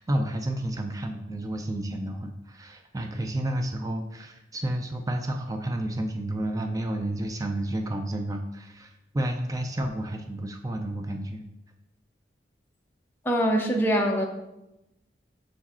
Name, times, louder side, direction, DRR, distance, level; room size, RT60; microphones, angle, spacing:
voice 1, 0.0-11.4, right 1 dB, 20° right, 4 dB, 0.4 m, -31 dB
voice 2, 13.2-14.3, equal, 10° left, 0 dB, 0.8 m, -23 dB
6.3 x 4.7 x 4.2 m, 0.92 s
head